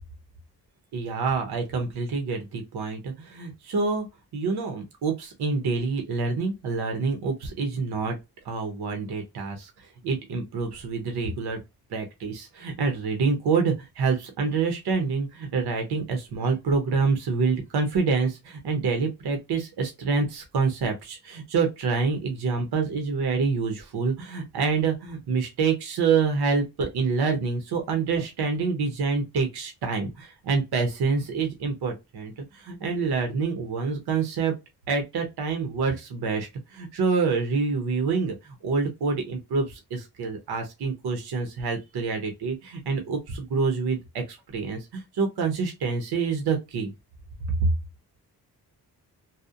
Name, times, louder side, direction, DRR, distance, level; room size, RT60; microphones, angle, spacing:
voice 1, 0.9-4.1 4.3-8.2 8.4-11.6 11.9-34.5 34.9-46.9 47.6-47.7, right 4 dB, 80° right, 0.7 m, -27 dB
2.7 x 2.0 x 2.4 m
wide cardioid pair, 125°, 38 cm